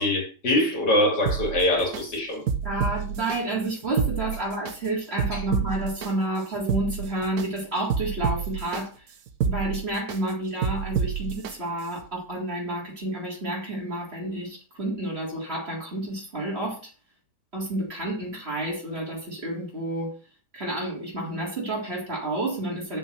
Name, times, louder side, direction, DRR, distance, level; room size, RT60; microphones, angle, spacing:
voice 1, 0.0-2.4 5.3-5.4, left 1 dB, 75° left, 3.2 m, -23 dB
sound 1, 1.3-2.0 2.5-3.4 3.8-4.7 5.2-6.1 6.5-7.5 7.9-8.8 9.3-10.2 10.6-11.5 12.0-12.1, right 7 dB, 65° right, 1.4 m, -28 dB
voice 2, 2.6-9.0 9.4-16.9 17.5-20.1 20.5-23.0, right 1 dB, 35° right, 3.8 m, -30 dB
7.1 x 5.7 x 6.5 m
omnidirectional pair, 1.8 m